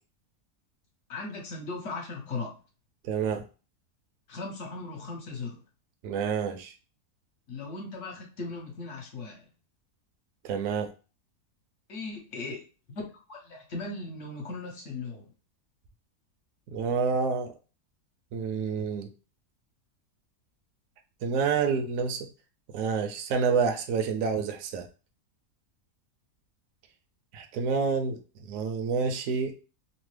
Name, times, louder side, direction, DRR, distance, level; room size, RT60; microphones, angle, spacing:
voice 1, 1.1-2.6 4.3-5.6 7.5-9.5 11.9-12.6 12.9-13.0 13.3-15.3, left 3 dB, 55° left, 1 dB, 1.1 m, -38 dB
voice 2, 3.0-3.4 6.0-6.7 10.4-10.9 16.7-17.5 18.3-19.1 21.2-22.3 22.7-24.9 27.3-29.6, right 5 dB, 70° right, 4 dB, 0.8 m, -28 dB
2.9 x 2.1 x 3.1 m, 0.34 s
omnidirectional pair, 1.6 m